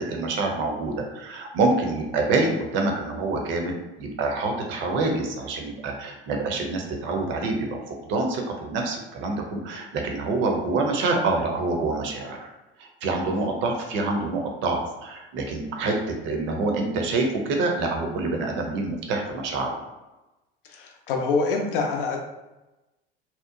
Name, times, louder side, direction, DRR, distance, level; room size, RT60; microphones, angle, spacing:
voice 1, 0.0-12.4 12.8-19.7, right 3 dB, 40° right, 2 dB, 0.6 m, -26 dB
voice 2, 20.7-22.2, left 4 dB, 65° left, 1 dB, 0.6 m, -25 dB
2.8 x 2.0 x 2.4 m, 1.0 s
figure-of-eight pair, 70°, 29 cm